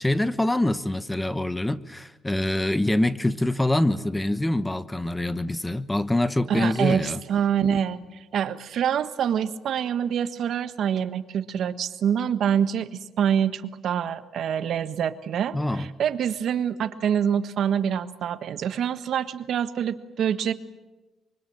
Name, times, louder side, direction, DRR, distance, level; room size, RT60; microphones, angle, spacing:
voice 1, 0.0-7.2 15.5-15.9, left 1 dB, 10° left, 14 dB, 1.1 m, -25 dB
voice 2, 6.5-8.0 8.3-20.5, right 8 dB, 70° right, 11 dB, 1.4 m, -26 dB
25.0 x 24.0 x 8.9 m, 1.1 s
cardioid pair, 90°, 0 cm